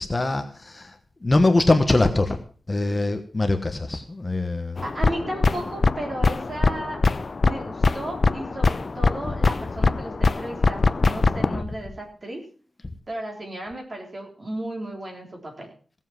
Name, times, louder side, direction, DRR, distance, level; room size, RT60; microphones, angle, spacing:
voice 1, 0.0-2.4 2.7-4.8 9.2-9.4 11.3-11.6, left 2 dB, 25° left, 6 dB, 1.1 m, -23 dB
sound 1, 4.8-11.6, left 3 dB, 40° left, 0.5 m, -22 dB
voice 2, 4.8-7.0 7.4-12.5 13.1-15.7, right 1 dB, 35° right, 1 dB, 3.8 m, -34 dB
16.5 x 7.5 x 5.9 m, 0.41 s
wide cardioid pair, 155°, 0 cm